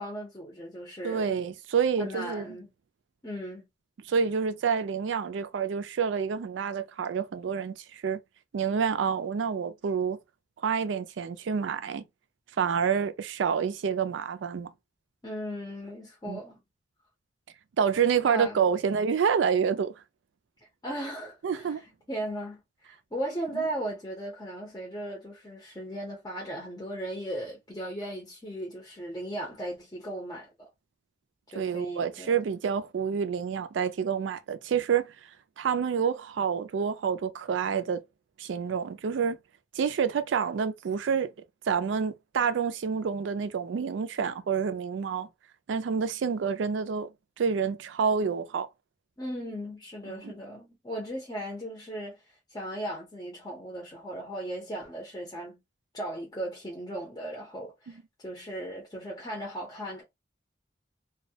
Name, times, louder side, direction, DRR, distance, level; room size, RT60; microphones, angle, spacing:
voice 1, 0.0-1.4 2.0-2.7 3.2-3.7 15.2-16.6 18.2-18.6 20.8-30.7 31.5-32.4 49.2-52.2 52.5-55.6 55.9-60.0, right 1 dB, 20° left, 0.6 m, -37 dB
voice 2, 1.0-2.5 4.1-8.2 8.5-10.2 10.6-12.0 12.6-14.7 16.3-16.4 17.8-19.9 21.4-21.8 23.5-23.6 31.5-35.1 35.6-38.0 38.4-39.4 39.8-41.3 41.7-45.3 45.7-47.1 47.4-48.7 50.1-50.3, right 6 dB, 85° right, 0.4 m, -28 dB
2.2 x 2.0 x 2.7 m
head